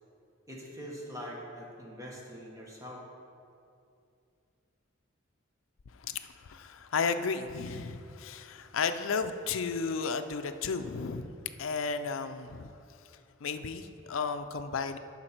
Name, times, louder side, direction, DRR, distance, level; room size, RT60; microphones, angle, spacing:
voice 1, 0.5-3.0, equal, 15° right, -3 dB, 1.4 m, -43 dB
voice 2, 6.5-11.3 11.6-12.7 13.4-15.0, left 5 dB, 75° left, 9 dB, 0.5 m, -33 dB
10.5 x 5.7 x 4.4 m, 2.5 s
head